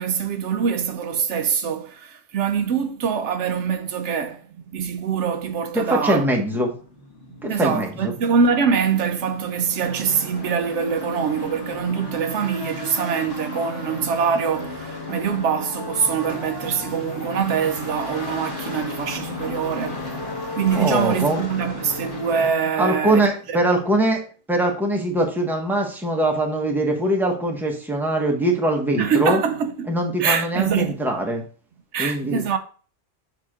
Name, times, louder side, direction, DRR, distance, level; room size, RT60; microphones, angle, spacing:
voice 1, 0.0-6.2 7.3-23.6 29.0-29.9 30.2-30.9 31.9-32.6, right 6 dB, 80° right, 1.0 m, -24 dB
sound 1, 4.7-22.5, left 3 dB, 55° left, 1.9 m, -35 dB
voice 2, 5.7-6.7 7.4-8.1 20.7-21.4 22.7-24.2 24.5-29.4 29.9-31.4 32.0-32.4, right 1 dB, ahead, 1.0 m, -22 dB
6.6 x 2.9 x 4.9 m
omnidirectional pair, 1.2 m